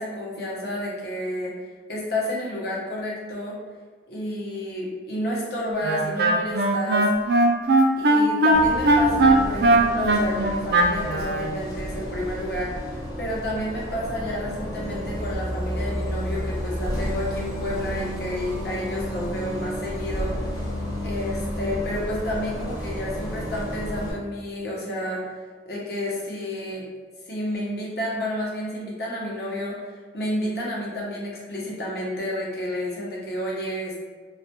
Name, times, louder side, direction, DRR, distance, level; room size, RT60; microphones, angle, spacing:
voice 1, 0.0-1.5 1.9-3.5 4.1-7.1 8.0-12.8 13.2-20.4 21.0-25.2 25.7-26.8 27.3-34.0, left 1 dB, 60° left, -4 dB, 0.7 m, -30 dB
Wind instrument woodwind instrument, 5.8-11.4, right 2 dB, 60° right, 0.3 m, -19 dB
Bus, 8.5-24.1, equal, 20° left, 0.5 m, -31 dB
2.3 x 2.2 x 2.7 m, 1.5 s
head